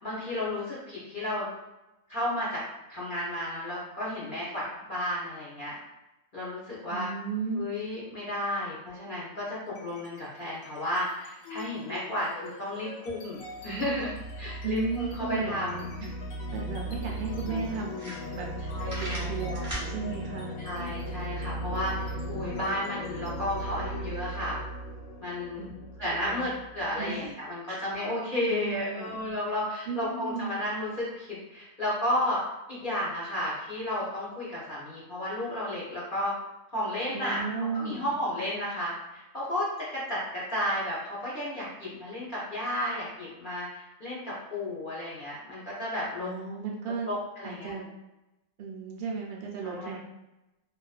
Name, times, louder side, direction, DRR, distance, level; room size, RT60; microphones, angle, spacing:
voice 1, 0.0-1.5 2.1-2.6 2.9-5.7 6.3-7.1 7.5-15.8 18.7-19.7 20.6-24.6 25.2-25.7 26.0-32.4 32.7-36.3 36.7-46.3 47.1-47.7 49.6-49.9, left 1 dB, 55° left, -7 dB, 0.6 m, -33 dB
voice 2, 6.9-7.7 14.6-16.1 16.5-18.5 19.0-20.6 25.6-25.7 26.0-26.4 27.0-27.3 27.7-27.8 28.5-29.1 29.9-30.5 37.1-38.0 46.2-47.1 47.4-47.9 48.6-50.0, right 4 dB, 75° right, -1 dB, 0.5 m, -35 dB
sound 1, 9.7-10.2 10.5-27.1, right 1 dB, 75° left, 1.0 m, -38 dB
sound 2, 17.9-18.6 18.9-19.9, right 1 dB, 20° right, 0.5 m, -37 dB
2.4 x 2.3 x 2.3 m, 0.98 s
omnidirectional pair, 1.6 m